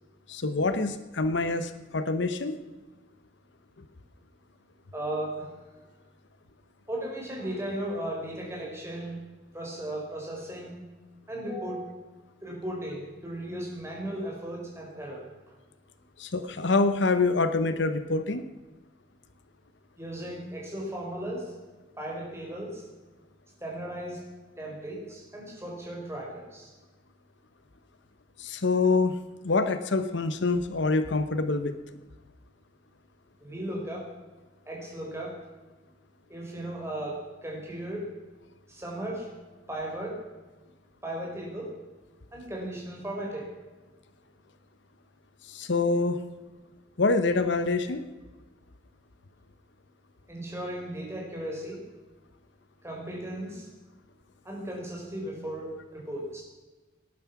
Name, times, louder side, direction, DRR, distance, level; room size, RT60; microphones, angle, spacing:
voice 1, 0.3-2.6 16.2-18.4 28.4-29.2 29.4-31.8 45.5-46.2 47.0-48.0, left 3 dB, 65° left, 10 dB, 0.9 m, -26 dB
voice 2, 4.9-5.5 6.9-9.2 9.5-10.8 11.3-11.9 12.4-15.5 20.0-21.5 22.0-22.9 23.6-24.2 24.6-26.7 33.4-34.1 34.7-35.4 36.3-38.1 38.7-39.3 39.7-40.2 41.0-41.8 42.3-43.5 50.3-51.8 52.8-53.7 54.4-56.4, right 1 dB, 15° right, -2 dB, 4.7 m, -36 dB
19.0 x 11.0 x 5.9 m, 1.2 s
head